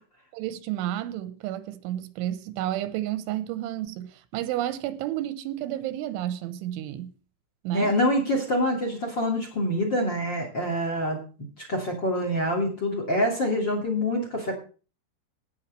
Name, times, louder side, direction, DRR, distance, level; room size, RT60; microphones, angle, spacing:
voice 1, 0.3-7.1 7.6-8.0, right 13 dB, 85° right, 3.2 m, -31 dB
voice 2, 7.7-11.2 11.6-14.5, left 1 dB, 30° left, 2.4 m, -26 dB
18.0 x 6.4 x 6.5 m
omnidirectional pair, 5.6 m